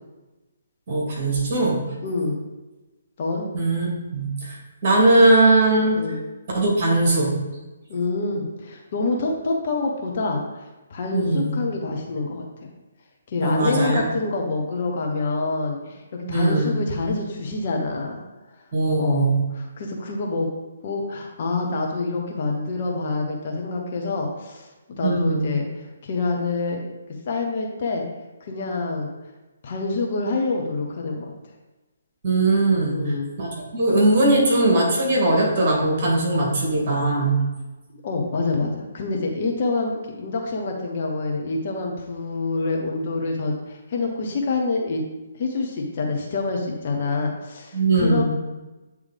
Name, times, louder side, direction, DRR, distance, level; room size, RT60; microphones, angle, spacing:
voice 1, 0.9-1.8 3.5-6.0 6.5-7.4 11.1-11.5 13.4-14.0 16.2-16.7 18.7-19.4 25.0-25.5 32.2-37.4 47.7-48.2, right 2 dB, 40° right, -2 dB, 2.1 m, -20 dB
voice 2, 2.0-2.4 3.2-3.5 5.9-6.2 7.9-10.6 10.9-12.7 13.3-18.2 19.0-20.5 20.8-24.7 25.0-26.9 27.3-28.0 28.4-29.1 29.6-31.3 32.8-33.3 37.9-45.0 45.4-48.2, left 3 dB, 40° left, 0 dB, 0.9 m, -26 dB
8.8 x 3.3 x 3.5 m, 1.1 s
figure-of-eight pair, 135°, 0 cm